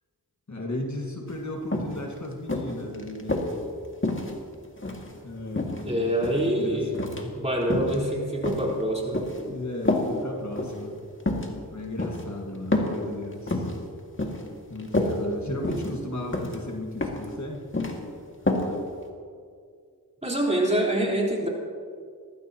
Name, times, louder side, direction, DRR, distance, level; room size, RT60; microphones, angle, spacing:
voice 1, 0.5-3.4 5.2-6.1 6.5-7.3 9.5-11.0 11.7-13.7 14.7-17.6 18.4-18.8, left 1 dB, 50° left, 0 dB, 1.8 m, -35 dB
sound 1, 1.3-1.4 1.7-2.0 2.5-3.5 4.0-5.1 5.5-6.5 6.9-7.3 7.6-8.0 8.4-9.4 9.9-10.1 10.5-10.8 11.2-11.5 12.0-12.2 12.7-13.0 13.3-13.8 14.2-14.5 14.8-15.1 15.6-16.0 16.3-16.6 17.0-17.3 17.5-18.0 18.5-18.7 19.0-19.1, left 2 dB, 30° left, 2.0 m, -28 dB
voice 2, 5.9-6.9 7.3-9.2 15.5-15.7 20.2-21.5, right 1 dB, 15° right, -3 dB, 4.0 m, -25 dB
19.5 x 14.5 x 2.9 m, 2.1 s
cardioid pair, 40°, 38 cm